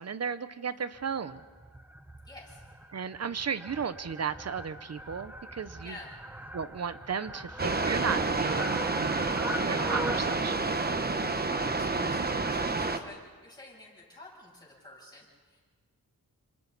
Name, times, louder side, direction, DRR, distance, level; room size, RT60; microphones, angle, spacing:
voice 1, 0.0-1.4 2.9-6.0 6.5-10.6, right 6 dB, 45° right, 13 dB, 0.8 m, -35 dB
Fowl, 0.9-10.4, right 1 dB, 5° right, 0.7 m, -41 dB
voice 2, 2.2-2.6 5.8-6.1 11.0-11.1 11.6-12.2 12.5-15.6, left 2 dB, 10° left, -5 dB, 7.9 m, -50 dB
sound 1, 7.6-13.0, right 3 dB, 25° right, 1.1 m, -29 dB
28.5 x 26.5 x 4.1 m, 1.5 s
wide cardioid pair, 130°, 36 cm